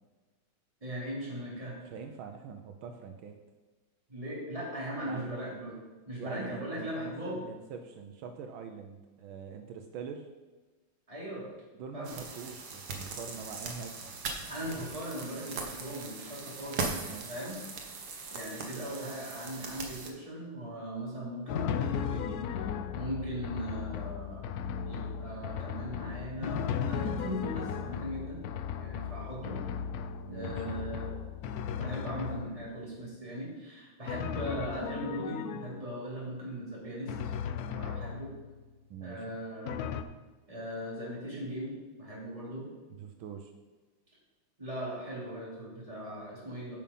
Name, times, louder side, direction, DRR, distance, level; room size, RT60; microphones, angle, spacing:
voice 1, 0.8-1.8 4.1-5.8 6.1-7.4 11.1-11.5 11.9-12.1 14.5-16.9 17.3-17.6 18.3-22.7 22.9-24.4 24.8-26.6 26.9-28.4 28.8-29.6 30.3-31.1 31.7-37.1 37.7-38.3 39.0-39.8 40.5-42.7 44.6-46.8, right 1 dB, 15° right, -6 dB, 3.2 m, -39 dB
voice 2, 1.9-3.4 5.0-5.3 6.2-10.3 11.7-14.0 17.0-17.4 30.2-30.8 38.9-39.2 43.0-43.5, right 6 dB, 80° right, 5 dB, 1.5 m, -44 dB
sound 1, 12.0-20.1, right 4 dB, 55° right, 1.6 m, -40 dB
Drum, 21.5-32.8 34.1-36.0 37.1-38.6 39.7-40.0, left 8 dB, 85° left, 0.8 m, -36 dB
10.0 x 5.7 x 5.4 m, 1.3 s
omnidirectional pair, 2.3 m